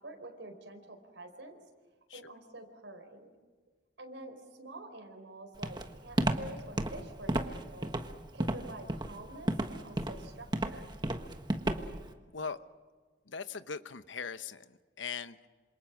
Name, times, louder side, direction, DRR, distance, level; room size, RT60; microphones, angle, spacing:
voice 1, 0.0-1.5 2.1-3.3 4.0-7.9 8.3-10.9, right 2 dB, 80° right, 3 dB, 4.6 m, -48 dB
Walk footsteps, 5.6-12.1, right 1 dB, 25° right, 1.4 m, -32 dB
voice 2, 13.3-15.5, left 5 dB, 90° left, 12 dB, 1.0 m, -40 dB
27.5 x 27.0 x 6.2 m, 1.4 s
head